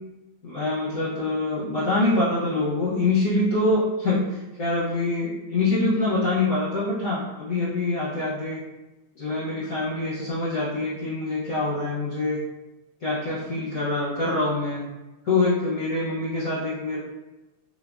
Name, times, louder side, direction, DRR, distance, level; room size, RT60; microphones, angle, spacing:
voice 1, 0.4-8.6 9.1-12.4 13.0-14.8 15.2-17.0, left 2 dB, 65° left, -9 dB, 0.8 m, -25 dB
3.6 x 2.2 x 2.2 m, 1.0 s
omnidirectional pair, 2.3 m